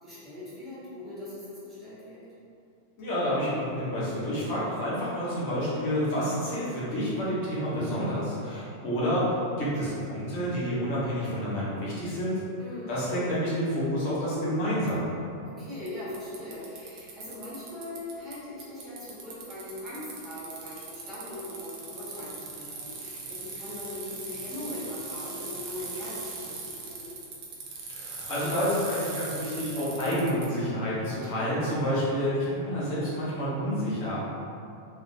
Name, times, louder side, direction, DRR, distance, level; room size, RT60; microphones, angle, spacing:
voice 1, 0.0-2.2 12.6-12.9 15.4-27.2, left 1 dB, 15° right, -11 dB, 1.3 m, -40 dB
voice 2, 3.0-12.4 12.9-15.2 27.9-34.3, equal, 45° left, -8 dB, 1.1 m, -29 dB
Bicycle, 14.9-15.0 15.9-16.0 16.1-18.3 18.6-30.5, right 4 dB, 40° right, 0.5 m, -40 dB
2.9 x 2.4 x 2.7 m, 2.6 s
figure-of-eight pair, 90°, 0 cm